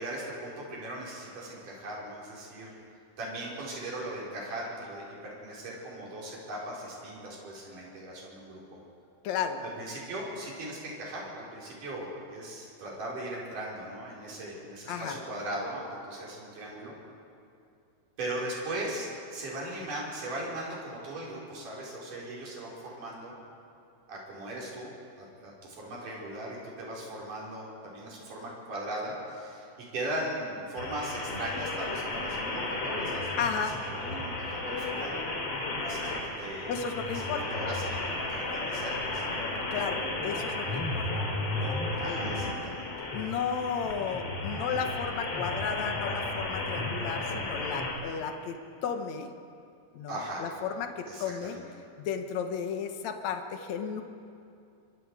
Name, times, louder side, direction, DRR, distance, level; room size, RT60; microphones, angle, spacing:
voice 1, 0.0-2.7 3.2-8.8 9.8-16.9 18.2-23.3 24.1-24.9 25.2-29.7 29.9-33.3 33.6-35.2 35.8-36.8 37.1-38.0 38.3-39.5 42.0-42.9 50.1-50.4 51.1-51.7, right 1 dB, 50° right, -5 dB, 6.3 m, -38 dB
voice 2, 9.2-9.6 14.9-15.2 33.4-33.8 36.7-37.4 39.7-41.1 41.5-42.3 43.1-49.3 49.9-51.6 52.0-54.0, left 7 dB, 65° left, 6 dB, 1.9 m, -34 dB
sound 1, 30.8-47.9, left 2 dB, 40° left, 3.4 m, -33 dB
24.5 x 24.5 x 4.9 m, 2.6 s
omnidirectional pair, 4.7 m